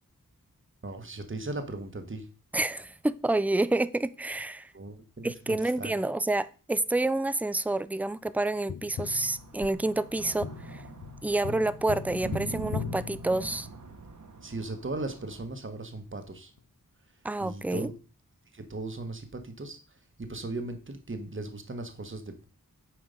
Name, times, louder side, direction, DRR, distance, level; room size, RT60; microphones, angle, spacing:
voice 1, 0.8-2.3 4.7-5.9 14.4-16.5 17.4-17.9 18.5-22.4, right 2 dB, 35° right, 1.4 m, -38 dB
voice 2, 2.5-4.7 5.2-10.8 11.2-13.7 17.2-17.9, right 2 dB, 5° right, 0.5 m, -28 dB
Tap, 8.7-14.0 16.6-16.7, left 8 dB, 65° left, 0.6 m, -39 dB
sound 1, 9.0-15.5, right 4 dB, 60° right, 1.6 m, -43 dB
9.4 x 5.0 x 5.2 m
wide cardioid pair, 65°, 33 cm